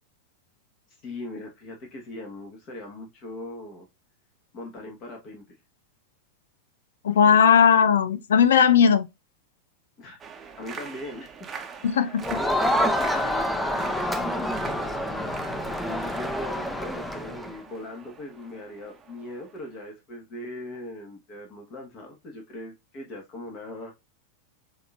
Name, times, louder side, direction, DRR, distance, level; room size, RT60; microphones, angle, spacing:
voice 1, 1.0-3.9 4.5-5.6 7.2-7.5 10.0-11.5 12.4-15.0 15.7-23.9, left 1 dB, 35° left, 1.4 m, -40 dB
voice 2, 7.0-9.1 11.8-12.4, left 7 dB, 65° left, 0.5 m, -18 dB
sound 1, 10.2-19.9, right 6 dB, 20° right, 0.9 m, -43 dB
Crowd, 12.2-17.6, left 1 dB, 5° left, 0.7 m, -27 dB
6.9 x 2.9 x 2.4 m
figure-of-eight pair, 90°, 0 cm